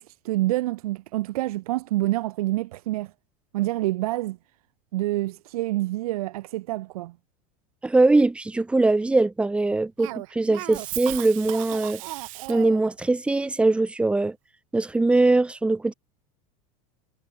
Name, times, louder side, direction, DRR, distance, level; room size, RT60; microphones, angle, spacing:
voice 1, 0.0-3.1 3.5-4.4 4.9-7.2, right 17 dB, 85° right, 2.9 m, -27 dB
voice 2, 7.8-12.0 12.5-14.4 14.7-15.9, right 2 dB, 5° right, 1.9 m, -21 dB
Cough, 10.0-12.9, right 21 dB, 65° right, 2.9 m, -35 dB
supercardioid pair, 170°, 18 cm